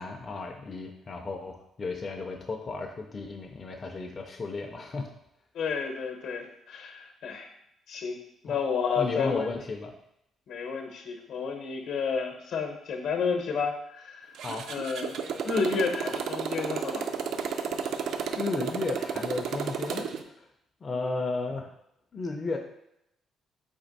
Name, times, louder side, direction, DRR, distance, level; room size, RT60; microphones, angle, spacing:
voice 1, 0.0-5.1 8.5-8.6 9.0-9.9 14.4-14.7 18.3-20.5 20.8-21.7 22.1-22.6, left 3 dB, 25° left, 1 dB, 0.4 m, -34 dB
voice 2, 5.5-7.5 7.9-9.5 10.5-14.3 14.7-15.2 15.4-17.1 20.9-21.1, left 5 dB, 70° left, 4 dB, 0.7 m, -31 dB
Motorcycle, 14.3-20.2, right 6 dB, 65° right, 0.4 m, -32 dB
4.3 x 2.8 x 4.0 m, 0.77 s
cardioid pair, 155°, 0 cm